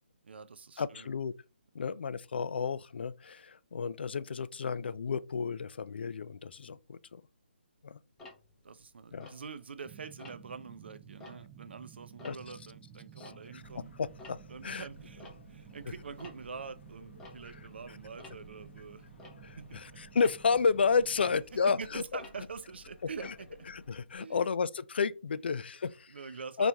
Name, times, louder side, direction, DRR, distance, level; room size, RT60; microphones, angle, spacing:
voice 1, 0.2-1.1 1.8-1.9 8.6-13.9 14.5-19.1 19.6-20.0 21.2-21.3 21.6-23.5 24.2-24.5 26.1-26.7, right 5 dB, 70° right, 0.5 m, -45 dB
voice 2, 0.8-1.3 1.7-7.2 7.8-8.0 9.1-9.3 12.2-12.4 13.2-13.6 14.0-14.8 17.5-17.6 19.4-22.2 23.2-23.3 23.7-26.2 26.6-26.7, left 5 dB, 65° left, 0.4 m, -32 dB
Tick-tock, 8.2-9.8 10.2-10.6 11.0-13.8 14.0-24.2, left 3 dB, 5° left, 0.7 m, -55 dB
sound 1, 9.8-21.4, right 9 dB, 15° right, 0.3 m, -54 dB
sound 2, 13.6-24.0, equal, 85° left, 1.0 m, -56 dB
3.9 x 3.0 x 3.4 m
hypercardioid pair, 160°, 6 cm